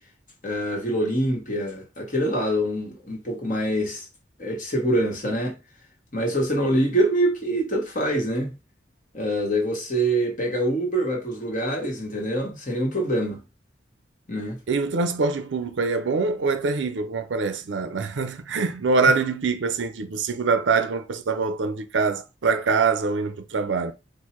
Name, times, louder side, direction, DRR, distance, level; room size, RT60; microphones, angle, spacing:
voice 1, 0.4-4.1 4.4-5.6 6.1-8.5 9.1-13.4 14.3-14.6, right 1 dB, 45° left, 1.3 m, -25 dB
voice 2, 14.7-23.9, right 4 dB, 80° right, 0.5 m, -24 dB
4.5 x 2.1 x 4.4 m
head